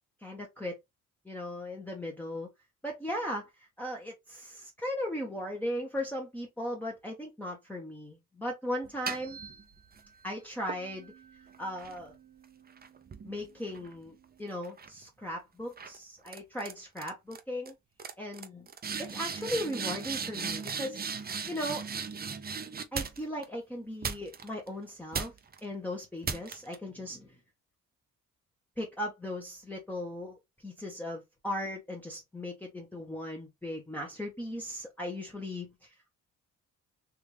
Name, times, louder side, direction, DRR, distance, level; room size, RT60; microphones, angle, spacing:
voice 1, 0.2-0.8 1.2-2.5 2.8-3.5 3.8-9.4 10.2-11.1 11.6-12.1 13.2-17.7 18.2-18.7 19.0-21.0 21.5-21.9 22.9-25.3 25.6-27.3 28.8-30.4 30.6-36.1, left 1 dB, 5° left, 1.0 m, -37 dB
sound 1, 8.8-10.1 10.7-14.3 14.6-15.0 15.8-16.0 16.3-16.7 17.0-17.4 17.7-17.8 18.0-23.4 24.0-24.7 25.1-25.6 26.2-26.8, right 6 dB, 30° right, 0.7 m, -38 dB
3.5 x 2.6 x 3.0 m
cardioid pair, 90°, 30 cm